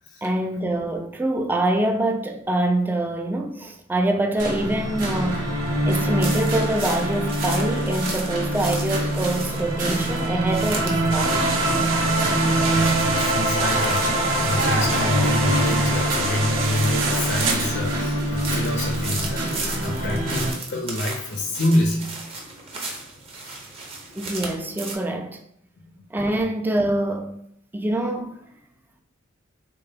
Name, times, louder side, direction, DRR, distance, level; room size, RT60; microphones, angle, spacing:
voice 1, 0.2-5.5 5.9-11.5 24.2-25.4 26.1-27.4 27.7-28.4, right 1 dB, 10° right, 0.3 m, -25 dB
sound 1, 4.4-20.5, right 1 dB, 45° right, 1.4 m, -24 dB
sound 2, 6.2-24.9, right 3 dB, 30° right, 0.7 m, -37 dB
sound 3, 11.1-17.5, right 4 dB, 65° right, 0.6 m, -28 dB
voice 2, 12.2-22.2, left 1 dB, 55° left, 0.6 m, -27 dB
3.8 x 3.4 x 2.7 m
head